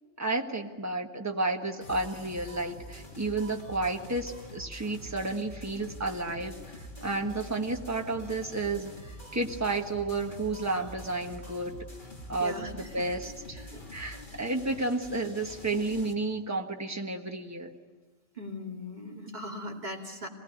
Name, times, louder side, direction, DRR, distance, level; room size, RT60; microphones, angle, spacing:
voice 1, 0.2-8.9 9.3-11.8 12.3-17.7, right 2 dB, 15° right, 3 dB, 1.5 m, -32 dB
sound 1, 1.8-16.1, equal, 40° left, 2.8 m, -45 dB
voice 2, 12.4-13.0 13.7-14.0 18.4-20.3, left 1 dB, 35° right, 0 dB, 2.8 m, -39 dB
26.0 x 19.5 x 9.3 m, 1.4 s
omnidirectional pair, 1.3 m